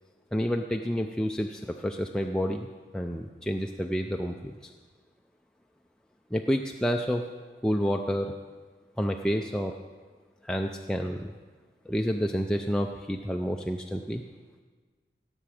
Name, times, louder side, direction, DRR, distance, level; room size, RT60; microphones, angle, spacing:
voice 1, 0.3-4.7 6.3-7.2 7.6-8.3 9.0-9.8 10.4-11.3 11.9-14.2, equal, 5° left, 2 dB, 0.3 m, -29 dB
16.5 x 7.1 x 4.9 m, 1.4 s
head